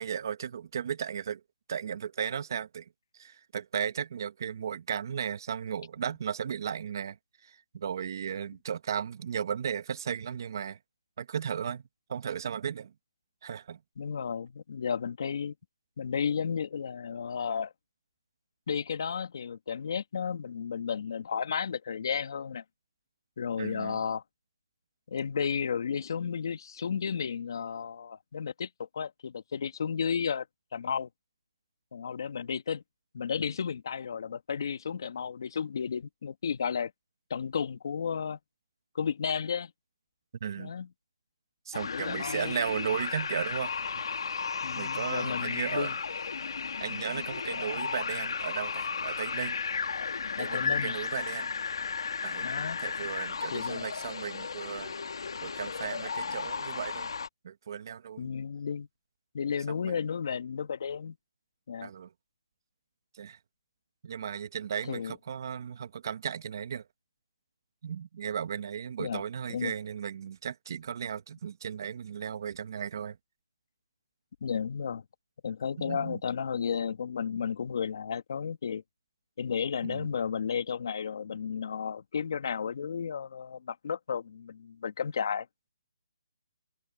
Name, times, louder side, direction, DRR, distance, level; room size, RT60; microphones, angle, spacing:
voice 1, 0.0-1.4 1.7-2.8 3.1-7.2 7.4-10.8 11.2-11.8 12.1-12.9 13.4-13.8 23.6-24.0 40.4-40.7 41.7-44.0 44.7-45.9 46.8-49.5 50.4-51.5 52.2-52.5 52.8-54.9 55.4-57.1 57.4-58.3 59.9-60.0 61.8-62.1 63.1-63.4 64.0-66.8 67.8-73.2 75.8-76.2 79.8-80.1, right 8 dB, 45° right, 1.7 m, -35 dB
voice 2, 14.0-15.6 16.0-17.7 18.7-22.6 23.4-24.2 25.1-30.5 30.7-31.1 31.9-32.8 33.1-36.9 37.3-38.4 38.9-39.7 40.6-40.9 41.8-42.6 44.6-46.0 50.4-51.0 52.4-52.8 53.5-53.9 58.2-58.9 59.3-61.2 61.7-61.9 64.8-65.1 69.0-69.2 69.5-69.7 74.4-75.0 75.4-78.8 79.4-85.5, left 6 dB, 50° left, 2.1 m, -33 dB
sound 1, 41.7-57.3, left 5 dB, 70° left, 1.8 m, -34 dB
hypercardioid pair, 165°, 3 cm